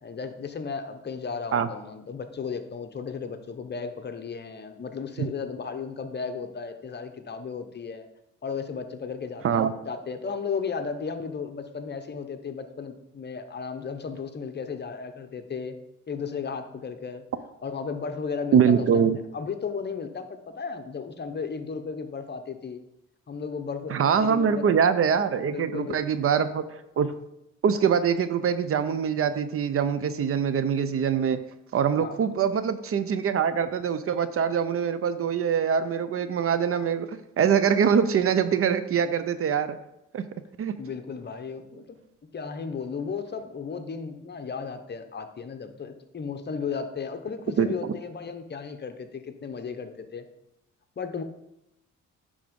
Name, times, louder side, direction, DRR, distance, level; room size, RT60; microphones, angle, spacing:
voice 1, 0.0-8.1 8.4-15.8 16.1-17.3 17.6-19.1 19.3-22.8 23.3-24.7 25.5-26.0 31.9-32.2 40.8-42.0 42.3-50.3 51.0-51.2, left 5 dB, 35° left, 8 dB, 0.9 m, -34 dB
voice 2, 18.5-19.2 23.9-27.1 27.6-31.4 31.7-39.8 40.1-40.2 40.6-40.8 47.6-47.7, right 7 dB, 50° right, 13 dB, 0.6 m, -24 dB
10.0 x 3.5 x 5.2 m, 0.86 s
cardioid pair, 90°, 30 cm